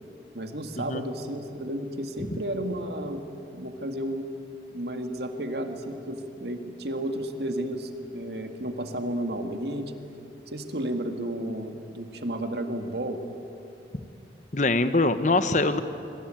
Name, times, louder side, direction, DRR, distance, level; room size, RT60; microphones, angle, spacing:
voice 1, 0.3-3.3 3.5-4.3 4.7-9.9 10.5-13.2, right 1 dB, 65° right, 6 dB, 2.0 m, -32 dB
voice 2, 14.5-15.8, left 2 dB, 40° left, 10 dB, 1.2 m, -23 dB
26.5 x 23.0 x 9.1 m, 2.7 s
head